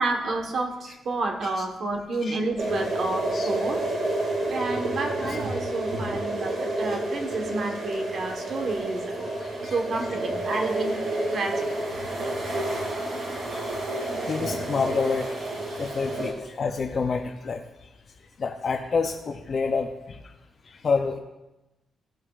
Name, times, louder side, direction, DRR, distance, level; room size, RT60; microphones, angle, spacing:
voice 1, 0.0-4.0 4.5-9.1 9.6-11.0 11.3-11.7, right 2 dB, 55° right, 3 dB, 1.2 m, -30 dB
sound 1, 2.6-16.3, right 2 dB, 90° right, 2.9 m, -29 dB
voice 2, 9.2-9.8 11.3-11.4 12.4-13.0 13.3-15.4 15.8-17.6 18.4-20.2 20.7-21.2, left 4 dB, 40° left, 4 dB, 0.5 m, -29 dB
15.0 x 7.8 x 2.4 m, 1.0 s
wide cardioid pair, 155°, 0 cm